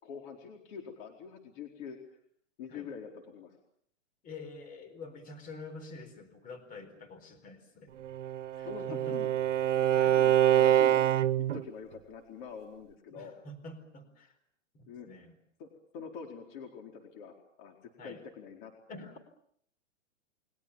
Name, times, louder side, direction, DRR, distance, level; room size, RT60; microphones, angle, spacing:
voice 1, 0.0-2.0 2.6-3.5 8.6-9.3 10.2-11.0 11.4-13.3 14.9-15.1 15.6-15.7 15.9-17.7 18.0-18.7 19.0-19.1, left 6 dB, 40° left, 2 dB, 4.5 m, -45 dB
voice 2, 4.2-7.9 8.6-9.4 10.0-10.2 13.1-14.4 14.7-15.4 18.0-18.2 18.9-19.2, left 2 dB, 20° left, 8 dB, 4.3 m, -47 dB
Bowed string instrument, 8.0-11.6, right 11 dB, 75° right, 1.2 m, -25 dB
29.5 x 23.0 x 7.2 m, 0.67 s
hypercardioid pair, 145°, 37 cm